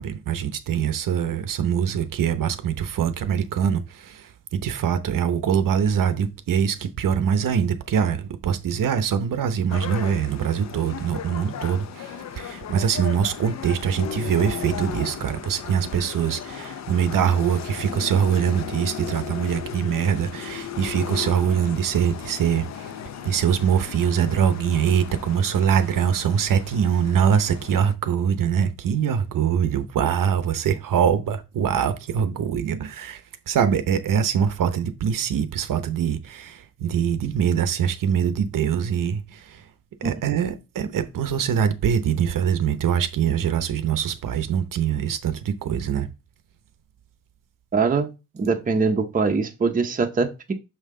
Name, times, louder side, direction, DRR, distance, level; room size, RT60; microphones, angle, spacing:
voice 1, 0.0-22.9 23.2-33.2 33.5-39.6 40.0-46.1, right 8 dB, 65° right, 0.8 m, -23 dB
sound 1, 9.7-27.9, left 8 dB, 50° left, 0.6 m, -36 dB
voice 2, 47.7-48.1 48.3-50.5, right 4 dB, 25° right, 0.7 m, -22 dB
6.3 x 5.6 x 3.7 m
wide cardioid pair, 170°, 35 cm